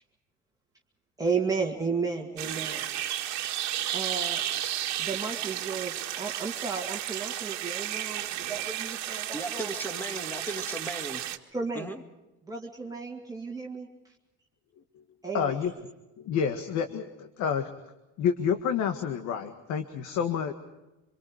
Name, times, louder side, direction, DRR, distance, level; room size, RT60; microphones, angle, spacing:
voice 1, 1.2-2.9 3.8-4.4 5.0-9.8 11.5-11.9 12.4-14.1 15.2-15.7, right 4 dB, 10° right, -2 dB, 2.3 m, -33 dB
sound 1, 2.4-11.4, right 12 dB, 60° right, 1.8 m, -33 dB
voice 2, 9.3-11.2 11.7-12.0, right 1 dB, 5° left, 6 dB, 2.0 m, -36 dB
voice 3, 15.3-15.7 16.2-17.7 18.2-20.5, left 7 dB, 65° left, 7 dB, 1.8 m, -29 dB
26.5 x 23.5 x 4.9 m, 1.0 s
cardioid pair, 140°, 31 cm